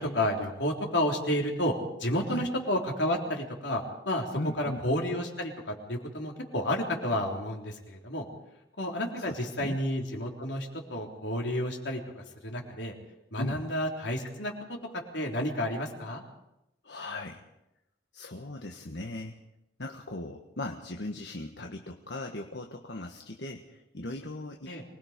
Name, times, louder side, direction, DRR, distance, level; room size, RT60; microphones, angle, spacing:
voice 1, 0.0-1.7 2.0-4.3 4.6-8.3 8.8-12.9 13.3-14.5 15.1-16.2 24.7-24.8, left 1 dB, 90° left, 1 dB, 3.8 m, -31 dB
voice 2, 4.3-4.8 9.2-9.8 13.4-13.6 16.8-17.4 18.1-19.4 19.8-24.7, left 2 dB, 75° left, 3 dB, 1.4 m, -38 dB
24.5 x 20.5 x 5.2 m, 0.86 s
head